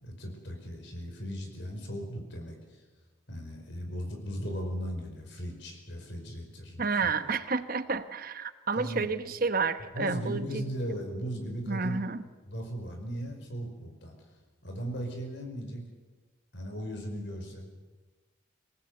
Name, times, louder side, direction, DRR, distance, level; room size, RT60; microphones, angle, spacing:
voice 1, 0.0-2.6 3.3-7.1 8.7-9.1 9.9-12.0 12.5-14.1 14.6-15.8 16.5-17.6, equal, 55° left, 3 dB, 5.1 m, -37 dB
voice 2, 6.8-10.6 11.7-12.2, right 4 dB, 45° right, 11 dB, 1.1 m, -30 dB
27.0 x 18.0 x 8.0 m, 1.3 s
head